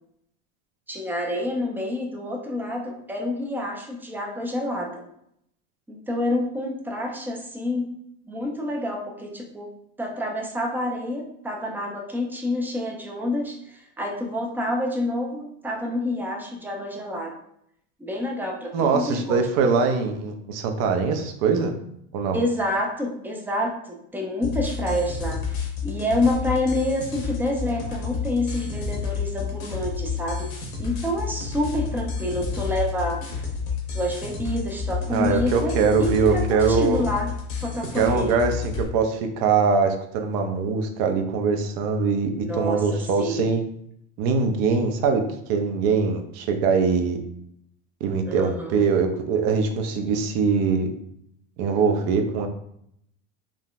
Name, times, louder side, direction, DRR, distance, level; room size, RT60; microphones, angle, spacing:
voice 1, 0.9-5.0 5.9-7.9 8.3-9.7 10.0-17.3 18.0-19.5 22.3-30.5 30.8-33.2 33.9-35.7 36.0-37.3 37.6-38.4 42.4-43.5 48.3-48.8, left 1 dB, 5° right, 0 dB, 0.4 m, -28 dB
voice 2, 18.7-21.7 22.1-22.4 35.1-37.0 37.9-43.6 44.2-45.2 45.5-47.2 48.0-50.9 51.6-52.5, right 5 dB, 60° right, 5 dB, 0.6 m, -22 dB
sound 1, 24.4-38.8, left 5 dB, 80° left, 1.0 m, -30 dB
3.7 x 2.1 x 2.3 m, 0.72 s
supercardioid pair, 110°, 39 cm